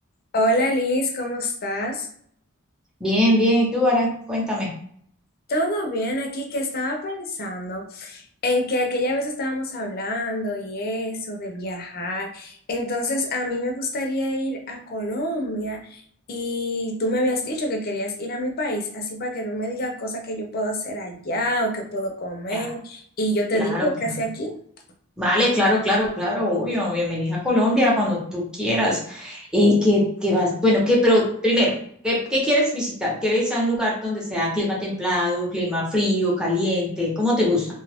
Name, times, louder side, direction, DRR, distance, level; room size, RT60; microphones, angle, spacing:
voice 1, 0.3-2.1 5.5-16.0 16.3-24.6, left 1 dB, 45° left, 3 dB, 0.6 m, -26 dB
voice 2, 3.0-4.7 22.5-22.7 23.5-23.9 25.2-31.7 32.0-37.7, left 1 dB, 5° right, -5 dB, 0.8 m, -21 dB
2.8 x 2.3 x 3.4 m, 0.63 s
head